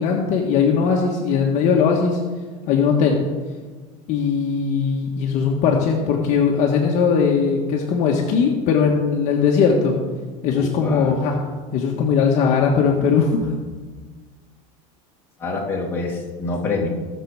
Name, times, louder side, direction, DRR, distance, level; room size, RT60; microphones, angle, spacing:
voice 1, 0.0-2.2 2.7-3.2 4.1-9.9 10.4-11.3 11.7-13.5, left 6 dB, 45° left, 0 dB, 1.5 m, -19 dB
voice 2, 10.5-11.2 15.4-16.9, left 3 dB, 10° left, -3 dB, 2.3 m, -26 dB
20.5 x 6.8 x 4.8 m, 1.4 s
supercardioid pair, 150°, 18 cm